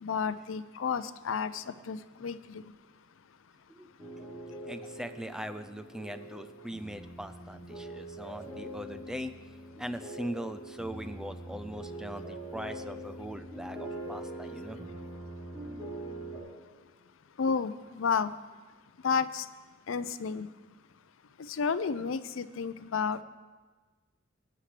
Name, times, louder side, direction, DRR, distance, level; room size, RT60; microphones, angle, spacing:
voice 1, 0.0-2.6 17.4-18.3 19.0-19.5 19.9-20.5 21.4-23.2, left 6 dB, 80° left, 14 dB, 0.5 m, -31 dB
sound 1, 4.0-16.4, right 1 dB, 20° right, 4.6 m, -43 dB
voice 2, 4.6-9.3 9.8-14.8, equal, 5° right, 9 dB, 0.4 m, -40 dB
18.5 x 9.8 x 3.3 m, 1.3 s
head